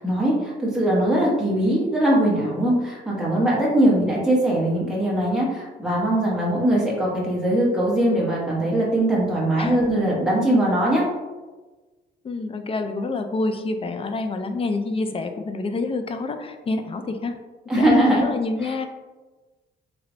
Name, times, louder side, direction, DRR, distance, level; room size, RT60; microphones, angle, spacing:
voice 1, 0.0-11.0 17.7-18.3 18.6-18.7, right 1 dB, 5° right, -6 dB, 1.0 m, -21 dB
voice 2, 9.6-10.0 12.2-17.4 17.7-18.9, left 3 dB, 30° left, 7 dB, 0.4 m, -27 dB
3.1 x 3.0 x 2.5 m, 1.2 s
cardioid pair, 90°, 20 cm